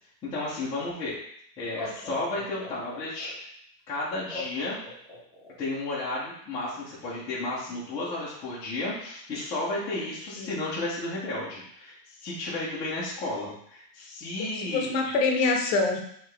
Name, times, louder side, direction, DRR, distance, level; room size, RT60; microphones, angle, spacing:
voice 1, 0.2-1.1 1.6-3.3 3.9-4.8 5.6-15.2, left 2 dB, 10° left, -9 dB, 0.4 m, -33 dB
Laughter, 0.9-1.0 1.6-3.3 4.3-5.5, left 3 dB, 10° right, 1.3 m, -40 dB
voice 2, 14.4-16.0, left 3 dB, 40° left, 2 dB, 0.8 m, -25 dB
5.5 x 2.9 x 3.2 m, 0.69 s
supercardioid pair, 155°, 50 cm